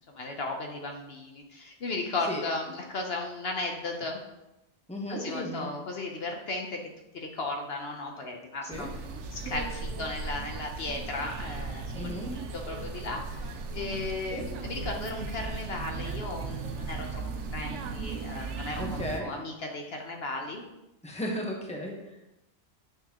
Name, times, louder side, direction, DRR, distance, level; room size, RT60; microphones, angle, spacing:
voice 1, 0.1-4.2 5.1-6.8 7.2-8.9 9.3-17.2 17.5-20.6, left 2 dB, 60° left, 2 dB, 1.0 m, -35 dB
voice 2, 4.9-5.7 8.7-8.9 11.9-12.3 14.3-14.5 18.8-19.3 21.0-22.2, left 1 dB, 5° left, -1 dB, 1.1 m, -35 dB
sound 1, 8.7-19.2, right 4 dB, 85° right, 1.0 m, -37 dB
8.2 x 6.3 x 2.9 m, 0.93 s
omnidirectional pair, 1.2 m